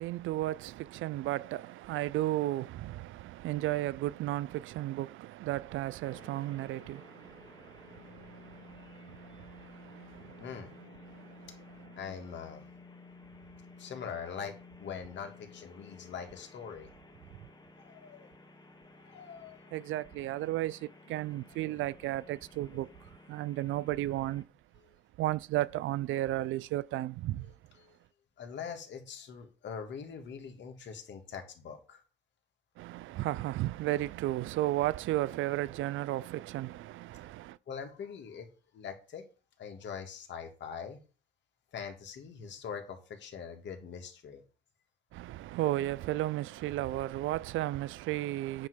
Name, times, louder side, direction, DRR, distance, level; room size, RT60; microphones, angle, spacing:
voice 1, 0.0-11.9 17.4-17.5 19.7-22.9 23.3-24.4 25.2-27.5 32.8-37.6 45.1-48.7, right 15 dB, 80° right, 0.4 m, -34 dB
sound 1, 6.0-24.4, left 4 dB, 20° left, 1.2 m, -54 dB
voice 2, 10.4-10.7 12.0-12.7 13.8-16.9 17.8-18.3 19.0-19.6 21.6-21.8 22.7-22.8 27.4-27.5 27.8-28.0 28.4-32.0 37.7-38.5 38.7-39.2 39.6-41.0 41.7-44.4, left 6 dB, 65° left, 1.8 m, -43 dB
8.8 x 3.1 x 6.1 m
cardioid pair, 90°, 20 cm